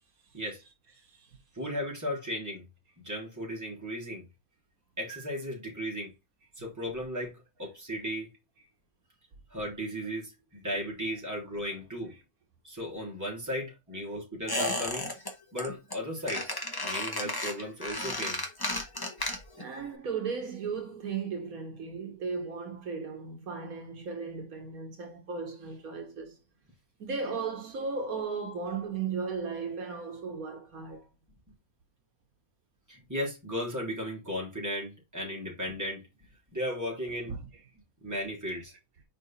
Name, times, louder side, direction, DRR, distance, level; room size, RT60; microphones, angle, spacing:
voice 1, 1.0-1.4 11.7-11.8 19.6-26.4 27.0-31.1 37.2-37.5, right 5 dB, 85° right, 1.8 m, -36 dB
voice 2, 1.5-2.7 3.0-4.2 5.0-6.1 6.6-8.3 9.5-12.1 12.6-15.1 15.5-16.5 16.8-18.4 32.9-36.0 36.5-37.3 38.0-38.7, equal, 10° right, 3.3 m, -35 dB
Squeak, 14.5-15.3 15.6-16.0 16.3-19.7 19.9-20.0, left 1 dB, 15° left, 1.3 m, -33 dB
5.1 x 4.5 x 4.2 m
omnidirectional pair, 1.5 m